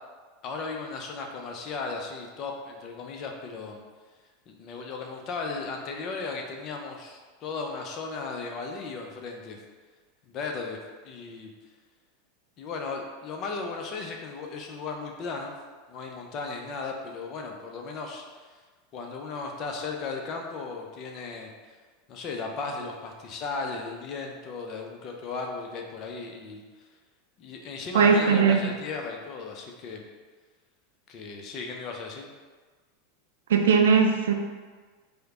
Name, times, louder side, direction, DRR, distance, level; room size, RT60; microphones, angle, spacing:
voice 1, 0.4-3.8 4.5-9.6 10.3-10.8 11.0-11.5 12.6-15.5 15.9-18.4 18.9-21.5 22.1-26.6 27.4-30.0 31.1-32.3, left 4 dB, 40° left, 2 dB, 0.5 m, -36 dB
voice 2, 27.9-28.7 33.5-34.3, right 6 dB, 65° right, 3 dB, 0.4 m, -19 dB
4.8 x 2.1 x 2.9 m, 1.4 s
figure-of-eight pair, 85°, 0 cm